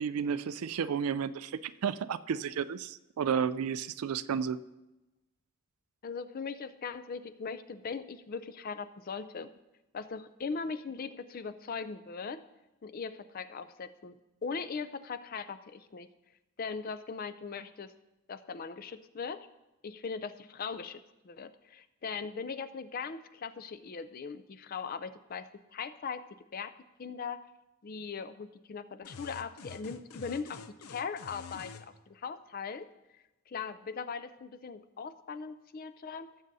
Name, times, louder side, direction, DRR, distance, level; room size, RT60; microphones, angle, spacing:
voice 1, 0.0-4.6, right 7 dB, 80° right, 15 dB, 0.4 m, -32 dB
voice 2, 6.0-9.5 9.9-12.4 12.8-14.2 14.4-16.1 16.6-17.9 18.3-19.5 19.8-26.2 26.5-26.7 27.0-27.4 27.8-30.6 30.9-32.9 33.5-36.3, left 5 dB, 40° left, 12 dB, 0.4 m, -39 dB
sound 1, 29.0-31.9, left 5 dB, 85° left, 0.6 m, -47 dB
17.5 x 7.5 x 2.7 m, 1.0 s
head